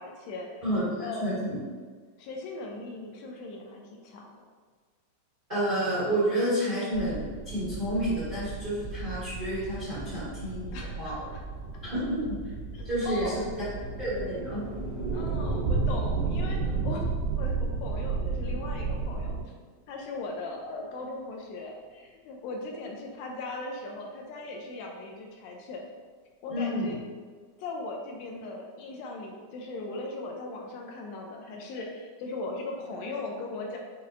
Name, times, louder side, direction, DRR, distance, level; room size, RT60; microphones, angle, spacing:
voice 1, 0.0-0.6 1.0-1.4 2.2-4.4 10.7-11.4 12.7-13.4 15.1-17.1 17.4-19.3 19.9-25.9 26.4-27.0 27.6-33.8, left 2 dB, 80° left, 0 dB, 1.6 m, -38 dB
voice 2, 0.6-1.6 5.5-11.1 11.8-12.4 12.8-13.4 14.0-14.6 26.5-26.9, right 1 dB, 30° right, -13 dB, 0.9 m, -30 dB
sound 1, 6.9-19.4, right 4 dB, 75° right, 1.7 m, -33 dB
sound 2, 13.6-21.8, equal, 55° right, 1.4 m, -44 dB
5.9 x 2.8 x 2.4 m, 1.5 s
omnidirectional pair, 3.4 m